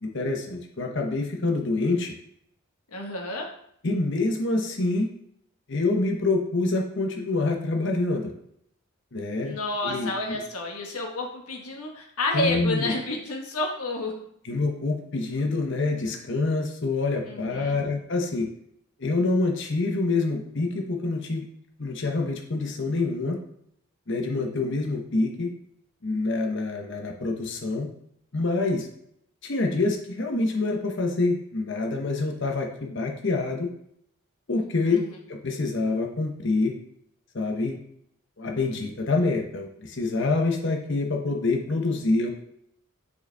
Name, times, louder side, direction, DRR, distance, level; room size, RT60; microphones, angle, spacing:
voice 1, 0.0-2.1 3.8-5.1 5.7-8.3 9.1-9.6 9.8-10.4 12.3-12.9 14.4-18.5 19.0-21.4 21.8-23.4 24.1-25.5 26.0-27.9 28.3-28.9 29.4-33.7 34.5-35.0 35.3-36.7 37.3-37.8 38.4-42.3, left 3 dB, 55° left, 2 dB, 0.9 m, -26 dB
voice 2, 2.9-3.5 9.4-14.1 17.2-17.8 34.9-35.2, left 2 dB, 90° left, 1 dB, 1.4 m, -30 dB
6.7 x 5.2 x 3.4 m, 0.71 s
head